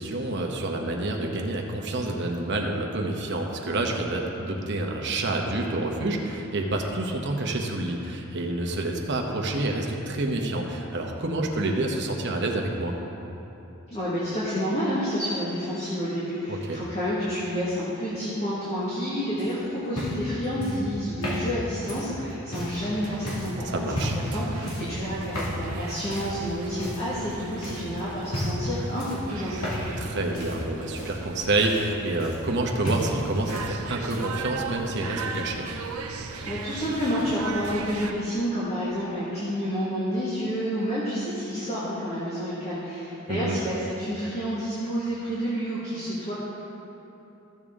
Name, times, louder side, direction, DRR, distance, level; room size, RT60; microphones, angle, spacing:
voice 1, 0.0-13.0 16.5-16.8 23.7-24.2 30.0-35.7 43.3-43.6, right 2 dB, 55° right, 1 dB, 1.0 m, -28 dB
voice 2, 13.9-30.1 36.4-46.3, equal, 30° left, -10 dB, 1.8 m, -29 dB
sound 1, 19.4-22.8 23.3-23.5 23.9-24.3 24.7-25.0 25.3-25.6 26.1-26.4 26.8-27.3 27.6-27.9 28.3-28.7 29.0-30.0 30.3-32.6 32.8-33.7 33.9-34.4 35.4-35.5, equal, 80° left, 2.3 m, -33 dB
sound 2, 22.5-38.1, right 4 dB, 80° right, 0.7 m, -38 dB
14.5 x 7.1 x 3.7 m, 3.0 s
head